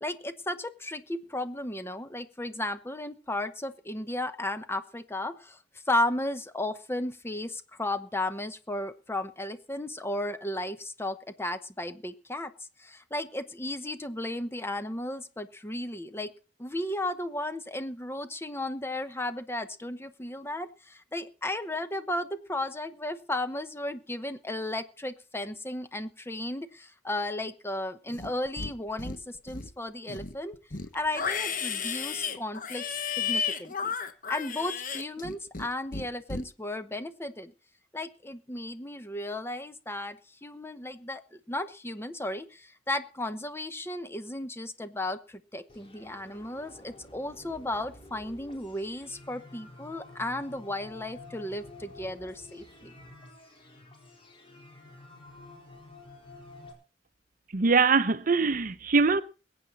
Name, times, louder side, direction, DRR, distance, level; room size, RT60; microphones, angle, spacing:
voice 1, 0.0-5.6 5.9-12.5 12.8-16.3 16.6-30.6 30.9-32.8 33.2-33.9 34.3-37.5 37.9-52.9, left 1 dB, 15° left, 0.9 m, -34 dB
Livestock farm animals working animals, 28.1-28.7 29.0-29.7 30.1-35.7 35.9-36.4, left 6 dB, 50° left, 1.2 m, -33 dB
sound 1, 45.7-56.7, left 2 dB, 30° left, 4.1 m, -50 dB
voice 2, 57.5-59.2, right 4 dB, 50° right, 0.7 m, -23 dB
21.5 x 8.8 x 4.1 m
head